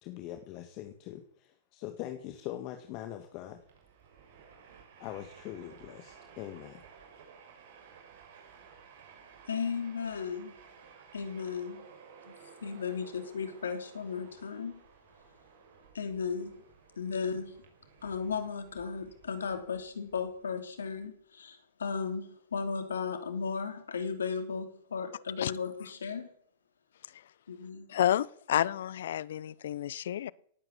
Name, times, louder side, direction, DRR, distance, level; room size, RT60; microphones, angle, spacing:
voice 1, 0.0-3.6 5.0-6.8, left 13 dB, 45° left, 1.8 m, -42 dB
Train, 3.5-21.1, right 6 dB, 60° right, 6.1 m, -56 dB
voice 2, 9.4-10.6 11.1-11.8 12.2-14.8 15.9-16.6 17.0-17.6 18.0-26.3 27.5-27.9, left 5 dB, 85° left, 3.0 m, -35 dB
voice 3, 27.9-30.3, left 11 dB, 70° left, 0.7 m, -30 dB
17.5 x 8.9 x 8.3 m
hypercardioid pair, 115°, 0 cm